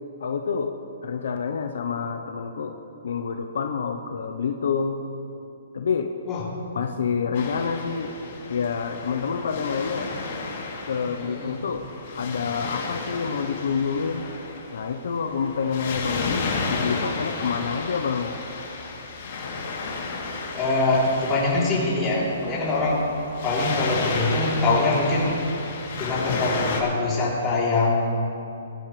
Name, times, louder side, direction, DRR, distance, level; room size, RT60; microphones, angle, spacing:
voice 1, 0.2-0.7 1.0-2.8 3.0-5.0 5.7-6.1 6.7-8.2 8.5-10.1 10.9-14.3 14.7-18.4, left 6 dB, 75° left, 5 dB, 0.8 m, -27 dB
Waves surf, 7.3-26.8, left 4 dB, 50° left, 3.0 m, -32 dB
voice 2, 11.0-11.5 20.5-23.0 23.4-25.4 26.0-28.1, left 2 dB, 20° left, -6 dB, 3.4 m, -23 dB
20.5 x 12.0 x 3.3 m, 2.8 s
hypercardioid pair, 160°, 0 cm